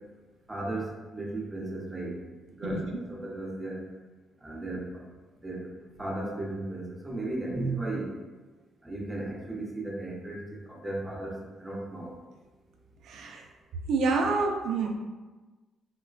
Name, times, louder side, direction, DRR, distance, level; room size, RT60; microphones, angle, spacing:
voice 1, 0.5-2.2 2.5-3.8 4.4-4.8 5.4-5.6 6.0-8.1 8.8-10.4 10.7-12.1, right 2 dB, 15° right, -3 dB, 0.7 m, -35 dB
voice 2, 2.6-3.0 13.0-13.4 13.9-14.9, right 3 dB, 75° right, 2 dB, 0.4 m, -28 dB
3.7 x 2.1 x 2.4 m, 1.2 s
cardioid pair, 90°, 0 cm